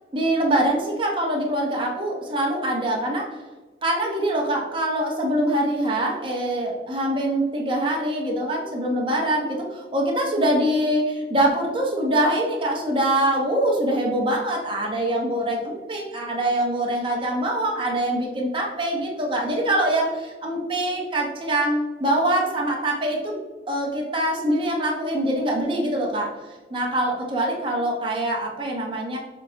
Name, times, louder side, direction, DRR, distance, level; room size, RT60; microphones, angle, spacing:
voice 1, 0.1-3.4 3.8-23.3 23.7-26.3 26.7-29.2, right 1 dB, 25° right, -1 dB, 1.0 m, -24 dB
6.8 x 4.3 x 3.4 m, 1.2 s
head